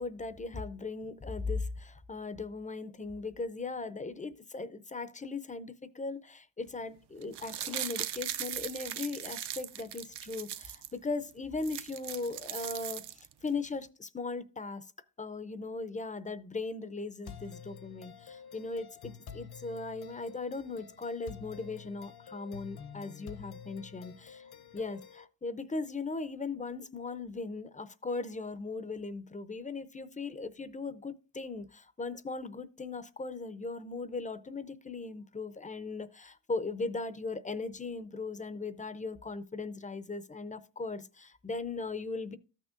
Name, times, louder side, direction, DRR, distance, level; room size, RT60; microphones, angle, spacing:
voice 1, 0.0-14.9 15.2-42.4, left 3 dB, 20° left, 0.5 m, -38 dB
sound 1, 7.2-10.9 11.3-11.4 11.6-13.5 13.8-13.9, right 11 dB, 65° right, 0.6 m, -39 dB
sound 2, 17.2-25.2, left 7 dB, 55° left, 0.8 m, -49 dB
14.0 x 6.3 x 2.4 m
wide cardioid pair, 115°, 45 cm